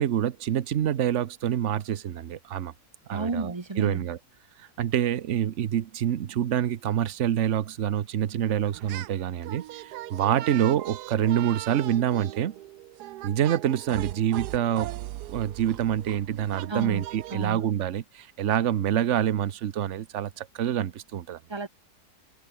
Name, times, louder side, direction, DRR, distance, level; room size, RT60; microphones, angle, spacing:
voice 1, 0.0-2.7 3.1-4.2 4.8-12.5 13.2-14.9 15.3-21.4, right 10 dB, 55° right, 1.1 m, -26 dB
voice 2, 3.1-4.0 16.7-17.0 17.3-17.6 21.5-21.7, right 3 dB, 20° right, 1.1 m, -32 dB
sound 1, 8.7-9.2 9.4-17.5, right 15 dB, 90° right, 1.2 m, -39 dB
omnidirectional pair, 1.7 m